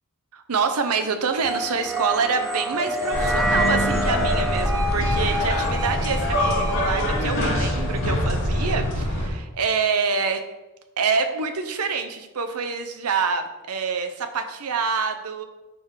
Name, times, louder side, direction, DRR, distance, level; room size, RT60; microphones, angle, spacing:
voice 1, 0.3-10.4 11.0-15.4, right 5 dB, 75° right, 6 dB, 0.8 m, -26 dB
sound 1, 1.4-7.8, right 1 dB, ahead, 0.3 m, -32 dB
sound 2, 1.4-8.9, equal, 15° right, 0.8 m, -30 dB
sound 3, 3.1-9.3, equal, 60° left, 2.4 m, -24 dB
7.0 x 5.0 x 4.6 m, 1.1 s
head